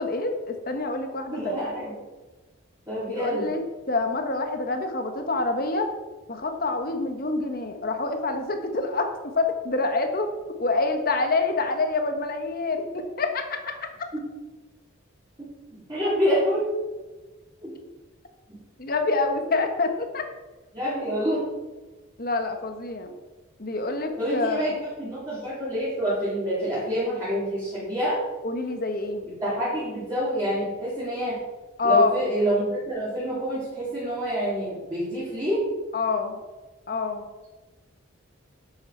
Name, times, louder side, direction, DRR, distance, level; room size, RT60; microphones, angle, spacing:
voice 1, 0.0-1.6 3.1-5.9 6.3-10.3 10.6-14.1 18.8-20.2 22.2-23.1 23.6-24.7 28.4-29.3 31.8-32.1 35.9-36.4 36.9-37.2, left 3 dB, 45° left, 5 dB, 1.3 m, -26 dB
voice 2, 1.3-1.9 2.9-3.5 14.1-14.2 15.9-16.7 17.6-17.7 18.5-18.6 20.7-21.4 24.2-28.2 29.4-31.4 31.8-35.6, equal, 15° right, -13 dB, 4.1 m, -27 dB
11.5 x 7.9 x 4.6 m, 1.2 s
head